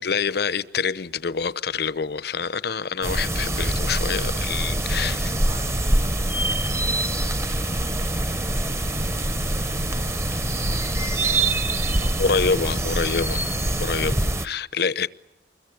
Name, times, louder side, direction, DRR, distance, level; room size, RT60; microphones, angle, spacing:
voice 1, 0.0-5.3 12.2-13.4 13.8-14.2 14.4-15.1, left 5 dB, 65° left, 0.8 m, -26 dB
sound 1, 3.0-14.5, right 1 dB, 15° right, 0.9 m, -24 dB
voice 2, 5.2-11.6 12.0-12.6 14.0-14.4, right 1 dB, 50° right, 2.3 m, -43 dB
26.0 x 22.0 x 8.0 m
head